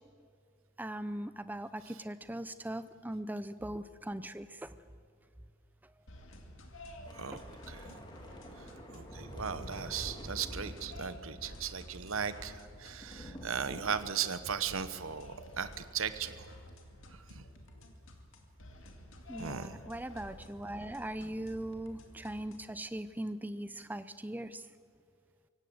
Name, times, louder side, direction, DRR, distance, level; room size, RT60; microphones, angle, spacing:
voice 1, 0.8-4.7 7.3-7.4 19.3-24.6, right 1 dB, 10° right, 13 dB, 0.6 m, -40 dB
sound 1, 6.1-22.8, left 1 dB, 60° left, 2.4 m, -52 dB
Thunder / Rain, 7.0-15.6 15.9-16.1 16.4-16.7, equal, 20° left, 2.7 m, -49 dB
voice 2, 7.1-8.0 8.6-16.5 17.3-17.4 19.4-19.8, right 7 dB, 65° right, 12 dB, 1.0 m, -37 dB
24.5 x 17.0 x 8.0 m, 2.3 s
head